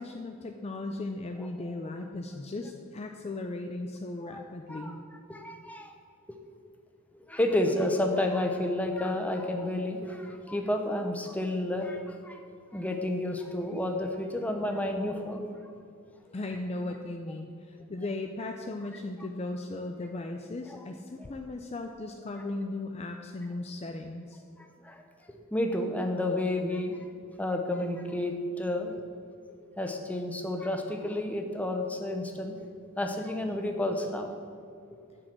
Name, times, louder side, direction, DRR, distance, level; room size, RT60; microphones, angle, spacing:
voice 1, 0.0-5.0 16.3-24.4, left 2 dB, 30° left, 4 dB, 0.5 m, -37 dB
voice 2, 5.3-5.9 7.1-12.4 12.7-15.5 20.7-20.8 24.8-25.0 25.3-27.0 27.4-28.9 29.5-32.5 33.0-34.3, left 1 dB, 5° left, 4 dB, 0.8 m, -31 dB
7.6 x 6.4 x 7.6 m, 2.4 s
head